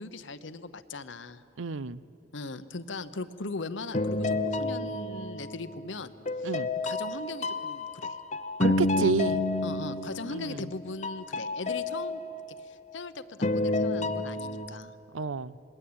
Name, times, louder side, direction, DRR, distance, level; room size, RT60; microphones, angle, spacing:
voice 1, 0.0-1.4 2.3-6.1 6.4-6.5 6.8-8.2 9.6-12.2 12.6-14.9, left 3 dB, 70° left, 12 dB, 1.0 m, -39 dB
voice 2, 1.6-2.0 6.4-6.7 8.6-9.4 10.2-10.7 15.1-15.5, right 4 dB, 80° right, 18 dB, 0.6 m, -30 dB
sound 1, 3.9-5.8 6.3-10.7 11.0-12.9 13.4-14.7, left 2 dB, 35° left, 0.9 m, -30 dB
27.0 x 21.0 x 8.8 m, 2.6 s
head